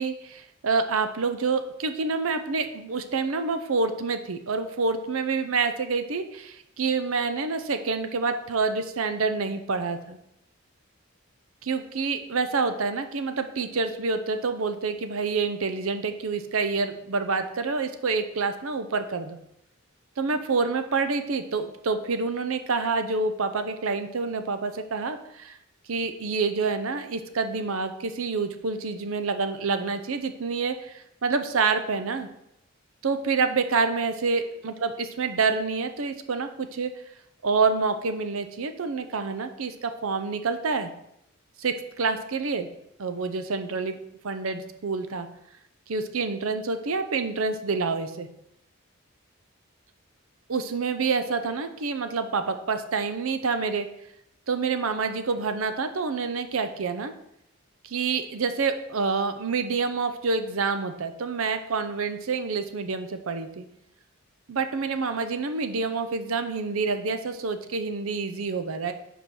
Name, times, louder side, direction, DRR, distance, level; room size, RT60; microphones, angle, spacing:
voice 1, 0.0-10.2 11.6-19.4 20.2-25.6 25.9-32.3 33.0-36.9 37.4-40.9 41.6-42.7 43.0-44.0 44.2-45.3 45.9-48.3 50.5-53.9 54.5-57.1 57.8-63.6 64.5-68.9, right 4 dB, 75° right, 9 dB, 0.6 m, -27 dB
5.4 x 4.5 x 6.2 m, 0.78 s
head